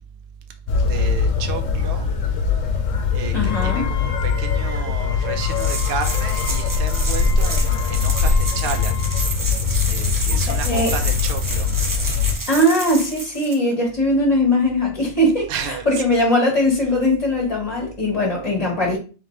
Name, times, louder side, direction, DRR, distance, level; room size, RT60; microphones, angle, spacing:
sound 1, 0.7-12.4, left 5 dB, 80° left, 1.1 m, -21 dB
voice 1, 0.8-2.1 3.1-8.9 9.9-11.7 15.5-16.0, right 6 dB, 55° right, 0.7 m, -32 dB
voice 2, 3.3-3.8 10.3-10.9 12.5-19.0, left 1 dB, 25° left, 1.2 m, -20 dB
Wind instrument woodwind instrument, 3.5-9.4, left 8 dB, 50° left, 1.1 m, -36 dB
sound 2, 5.5-13.6, right 2 dB, 35° right, 0.3 m, -30 dB
4.1 x 3.0 x 3.1 m
omnidirectional pair, 1.3 m